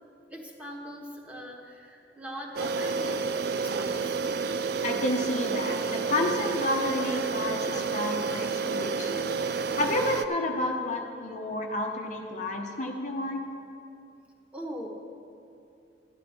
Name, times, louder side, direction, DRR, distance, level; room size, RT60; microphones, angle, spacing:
voice 1, 0.3-3.3 3.6-4.2 14.5-14.9, equal, 10° right, -1 dB, 1.3 m, -41 dB
sound 1, 2.5-10.2, right 4 dB, 60° right, 0.4 m, -30 dB
voice 2, 4.8-9.3 9.8-13.4, left 1 dB, 45° left, 2 dB, 0.9 m, -30 dB
13.0 x 10.5 x 4.4 m, 2.6 s
head